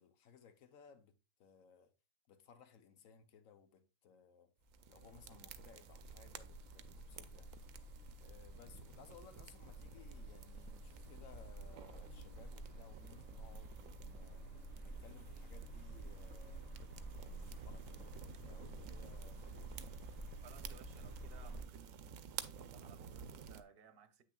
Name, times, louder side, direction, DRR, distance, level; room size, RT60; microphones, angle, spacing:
voice 1, 0.0-1.9 2.3-4.5 4.9-7.8 8.2-14.5 14.8-16.7 17.1-19.9, left 7 dB, 75° left, 1.2 m, -62 dB
sound 1, 4.7-21.6, right 1 dB, 55° left, 2.8 m, -51 dB
sound 2, 4.7-23.6, right 7 dB, 80° right, 1.0 m, -54 dB
voice 2, 20.4-21.9 22.6-24.2, right 7 dB, 50° right, 0.9 m, -61 dB
8.2 x 6.3 x 2.3 m
omnidirectional pair, 1.4 m